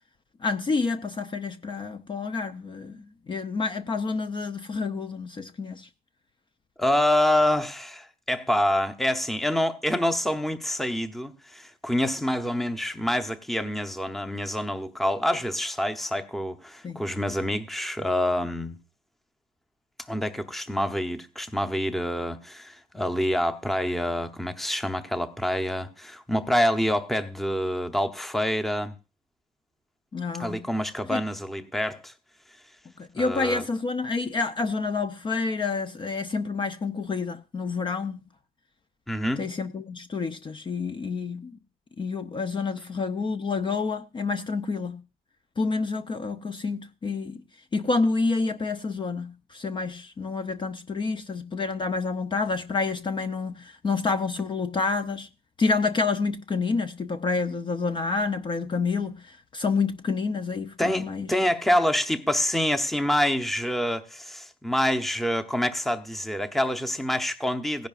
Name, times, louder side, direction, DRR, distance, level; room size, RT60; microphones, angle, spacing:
voice 1, 0.4-5.9 16.8-17.0 30.1-30.6 31.1-31.2 33.0-38.2 39.4-41.6 42.0-45.0 45.6-47.4 47.7-55.3 55.6-61.3, left 4 dB, 30° left, 0.6 m, -28 dB
voice 2, 6.8-18.8 20.1-28.9 30.4-32.1 33.1-33.7 39.1-39.5 60.8-67.9, left 1 dB, ahead, 0.8 m, -26 dB
17.0 x 10.5 x 2.5 m
cardioid pair, 110°, 17 cm